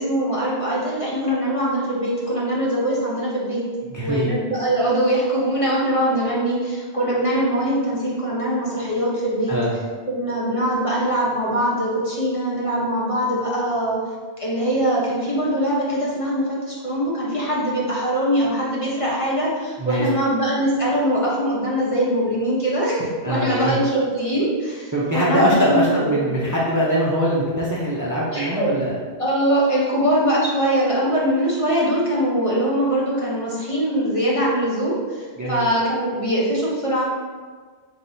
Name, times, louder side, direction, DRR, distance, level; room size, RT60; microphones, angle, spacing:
voice 1, 0.0-3.6 4.0-9.5 10.1-14.0 14.4-26.4 28.3-28.7 29.2-37.0, right 1 dB, 35° left, -6 dB, 1.0 m, -22 dB
voice 2, 3.9-4.4 9.5-9.7 19.8-20.1 23.2-23.8 24.9-28.9 35.4-35.6, equal, 20° right, -6 dB, 0.6 m, -22 dB
5.8 x 3.2 x 2.7 m, 1.5 s
omnidirectional pair, 1.1 m